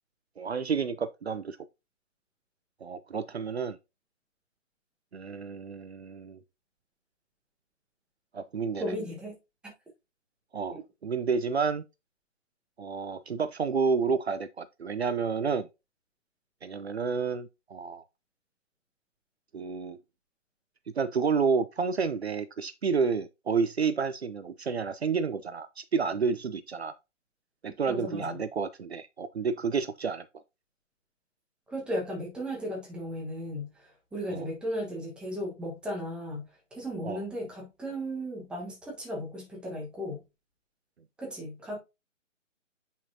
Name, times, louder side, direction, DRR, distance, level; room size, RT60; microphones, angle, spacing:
voice 1, 0.4-1.6 2.8-3.8 5.1-6.4 8.3-8.9 10.5-11.8 12.8-15.7 16.6-18.0 19.5-20.0 21.0-26.9 27.6-30.2 34.3-34.5 37.0-37.2, right 5 dB, 55° right, 0.7 m, -30 dB
voice 2, 8.8-9.3 10.7-10.8 27.9-28.4 31.7-40.2 41.2-41.8, equal, ahead, 1.3 m, -36 dB
8.4 x 5.6 x 2.7 m
figure-of-eight pair, 140°, 38 cm